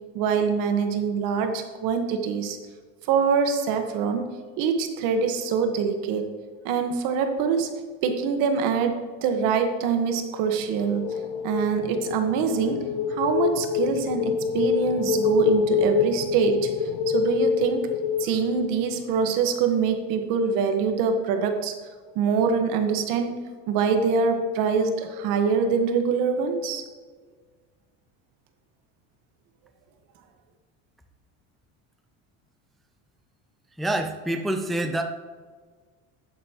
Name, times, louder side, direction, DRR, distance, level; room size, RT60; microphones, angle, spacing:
voice 1, 0.1-2.6 3.1-4.3 4.6-6.3 6.6-7.7 8.0-11.1 11.4-16.7 17.1-17.9 18.2-21.7 22.1-26.8, right 5 dB, 70° right, 6 dB, 1.4 m, -24 dB
sound 1, 10.4-19.3, left 6 dB, 55° left, 0.7 m, -26 dB
voice 2, 33.8-35.0, right 1 dB, ahead, 6 dB, 0.5 m, -26 dB
12.0 x 8.4 x 3.0 m, 1.5 s
cardioid pair, 140°, 34 cm